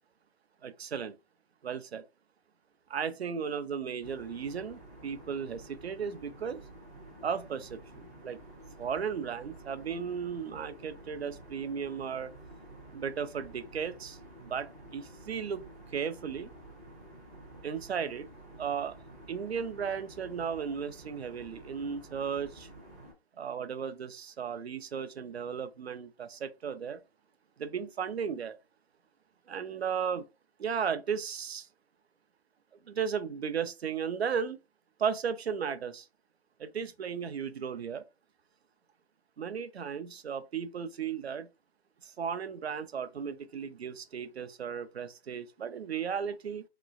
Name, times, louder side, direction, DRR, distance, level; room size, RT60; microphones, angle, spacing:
voice 1, 0.6-1.2 1.6-2.0 2.9-6.6 7.2-8.4 8.8-12.3 12.9-15.6 15.9-16.5 17.6-18.3 18.6-18.9 19.3-22.7 23.4-27.0 27.6-28.6 29.5-30.2 30.6-31.7 32.9-34.6 35.0-36.1 36.6-38.0 39.4-41.5 42.0-46.6, right 7 dB, 70° right, 0.6 m, -35 dB
sound 1, 4.0-23.1, right 1 dB, 15° right, 0.6 m, -51 dB
3.0 x 3.0 x 2.4 m
hypercardioid pair, 160°, 33 cm